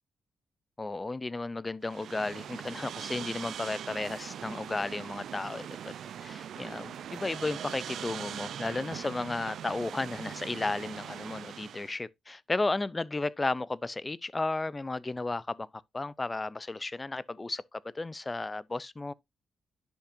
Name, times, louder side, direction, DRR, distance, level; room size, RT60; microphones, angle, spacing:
voice 1, 0.8-5.9 6.2-15.7 15.9-19.1, left 2 dB, 20° left, 0.4 m, -34 dB
sound 1, 1.8-12.0, right 9 dB, 70° right, 0.4 m, -41 dB
10.0 x 5.6 x 2.6 m
cardioid pair, 90°, 0 cm